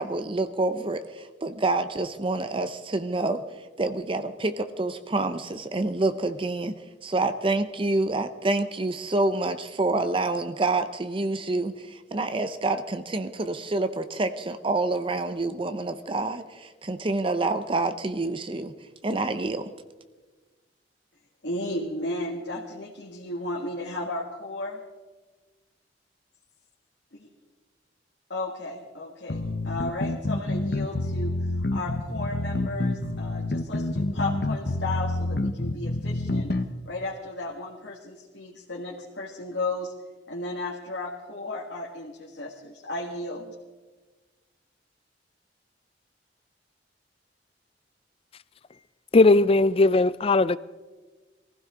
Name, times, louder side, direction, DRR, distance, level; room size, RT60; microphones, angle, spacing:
voice 1, 0.0-3.4 3.8-6.8 7.0-18.7 19.0-19.7, right 2 dB, 30° right, 10 dB, 0.6 m, -27 dB
voice 2, 21.4-24.8 27.2-27.3 28.3-31.3 31.7-36.5 36.9-39.9 40.3-43.5, left 2 dB, 75° left, -3 dB, 1.9 m, -34 dB
sound 1, 29.3-36.7, left 2 dB, 60° left, 0.9 m, -28 dB
voice 3, 49.1-50.6, left 2 dB, 30° left, 17 dB, 0.4 m, -18 dB
23.0 x 15.5 x 3.8 m, 1.3 s
head